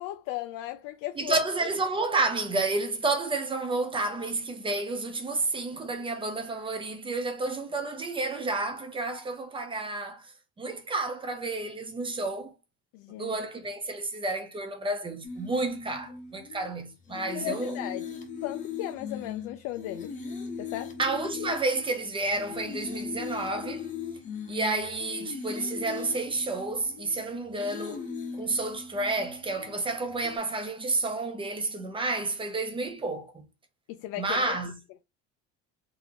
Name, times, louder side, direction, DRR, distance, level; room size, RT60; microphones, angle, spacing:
voice 1, 0.0-1.4 12.9-13.3 17.3-18.1 18.4-20.1 20.6-21.0 33.9-34.6, left 15 dB, 75° left, 0.5 m, -36 dB
voice 2, 1.2-10.3 10.6-12.5 13.2-17.8 21.0-23.9 24.5-28.1 28.3-33.5 34.2-34.8, right 2 dB, 15° right, 0.4 m, -30 dB
sound 1, 15.2-16.7 17.1-22.0 22.3-27.2 27.6-29.8 30.2-30.4, left 6 dB, 25° left, 0.7 m, -39 dB
3.8 x 2.6 x 2.8 m
cardioid pair, 175°, 33 cm